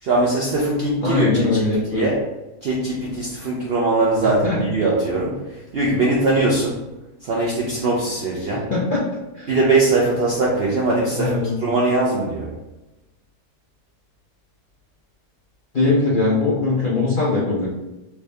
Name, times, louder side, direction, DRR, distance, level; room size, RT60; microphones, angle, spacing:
voice 1, 0.0-1.6 1.9-2.2 2.6-6.9 7.2-8.7 9.5-12.6, right 2 dB, 65° right, -4 dB, 0.6 m, -21 dB
voice 2, 1.0-2.1 4.4-4.6 8.5-9.1 9.3-9.6 11.1-11.6 15.7-17.7, left 3 dB, 55° left, -6 dB, 0.6 m, -21 dB
3.4 x 2.7 x 3.2 m, 1.0 s
omnidirectional pair, 1.6 m